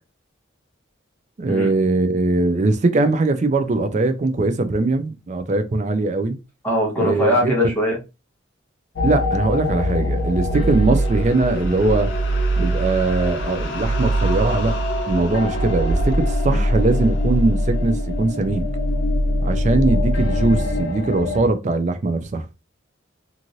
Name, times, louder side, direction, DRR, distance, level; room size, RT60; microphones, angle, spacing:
voice 1, 1.4-6.4 7.0-7.5 9.0-12.1 12.6-14.8 15.1-18.7 19.4-22.5, right 2 dB, 35° right, 0.4 m, -21 dB
voice 2, 6.6-8.0 10.5-10.6 16.5-16.7, left 1 dB, 10° left, 1.0 m, -21 dB
sound 1, 9.0-21.5, equal, 60° left, 0.6 m, -22 dB
3.0 x 2.5 x 2.6 m
head